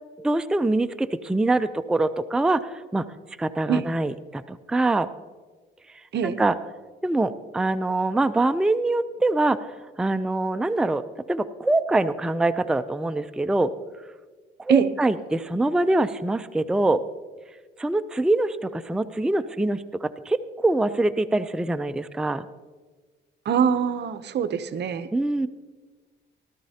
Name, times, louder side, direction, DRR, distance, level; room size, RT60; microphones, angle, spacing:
voice 1, 0.2-3.1 3.4-5.1 6.2-6.5 7.0-9.7 10.0-13.7 14.6-17.0 17.8-22.5 25.1-25.5, right 2 dB, 5° right, 10 dB, 0.4 m, -24 dB
voice 2, 23.5-25.1, right 7 dB, 60° right, 12 dB, 0.7 m, -23 dB
17.0 x 12.5 x 2.8 m, 1.4 s
cardioid pair, 90°, 20 cm